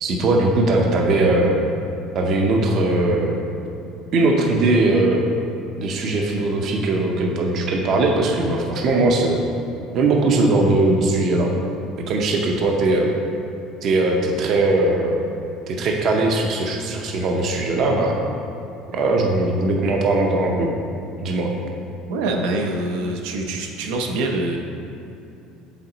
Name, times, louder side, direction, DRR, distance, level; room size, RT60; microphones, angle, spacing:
voice 1, 0.0-1.6 2.1-3.3 4.1-5.2 5.8-9.5 9.9-11.5 12.1-13.1 13.8-15.2 15.7-18.2 18.9-20.7 21.2-21.5, right 2 dB, 40° right, 1 dB, 0.6 m, -19 dB
voice 2, 22.1-24.6, right 2 dB, 80° right, 2 dB, 0.6 m, -25 dB
7.3 x 3.9 x 3.9 m, 2.7 s
cardioid pair, 165°, 0 cm